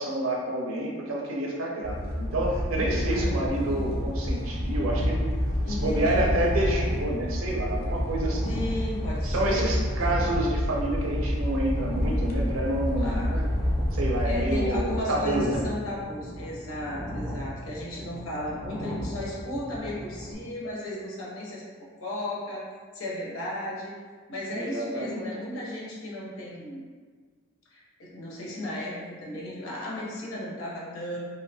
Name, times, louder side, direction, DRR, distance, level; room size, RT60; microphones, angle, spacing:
voice 1, 0.0-8.5 9.2-13.5 13.9-15.6 17.4-17.5 24.5-25.3, right 1 dB, 75° right, -2 dB, 0.5 m, -29 dB
sound 1, 1.8-15.0, equal, 45° left, 0.4 m, -29 dB
sound 2, 2.2-20.3, equal, 25° right, 0.5 m, -37 dB
voice 2, 3.1-4.0 5.6-6.3 8.5-10.3 13.0-13.3 14.2-22.6 22.9-23.9 24.3-26.8 27.7-31.2, left 1 dB, 80° left, -5 dB, 0.7 m, -35 dB
2.6 x 2.1 x 2.6 m, 1.5 s
head